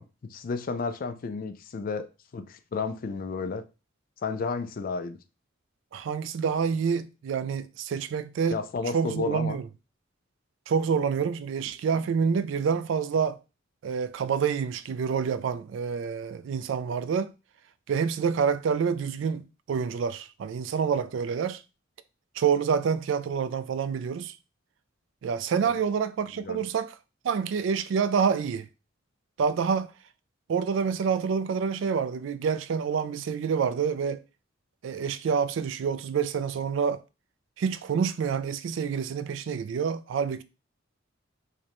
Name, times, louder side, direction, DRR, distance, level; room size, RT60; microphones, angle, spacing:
voice 1, 0.0-2.1 2.3-3.6 4.2-5.2 8.5-9.6 25.6-25.8 26.3-26.6, left 4 dB, 45° left, 0.3 m, -32 dB
voice 2, 5.9-8.6 8.9-9.6 10.7-13.4 13.8-17.3 17.9-21.6 22.4-24.4 25.2-27.0 27.2-28.7 29.4-29.9 30.5-34.2 34.8-37.0 37.6-40.4, right 6 dB, 70° right, 0.3 m, -27 dB
4.9 x 2.2 x 2.9 m
head